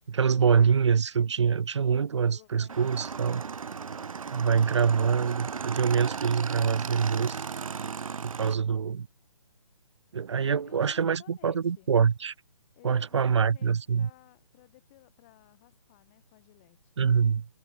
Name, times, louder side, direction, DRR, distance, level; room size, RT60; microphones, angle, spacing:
voice 1, 0.1-3.4 4.3-7.4 8.2-9.1 10.1-12.3 12.8-14.1 17.0-17.5, right 6 dB, 60° right, 1.5 m, -25 dB
voice 2, 2.2-4.1 8.2-8.8 10.5-11.9 12.7-16.9, left 20 dB, 20° left, 6.9 m, -58 dB
Motorcycle / Engine, 2.7-8.5, right 6 dB, 80° right, 0.9 m, -36 dB
hypercardioid pair, 165°, 17 cm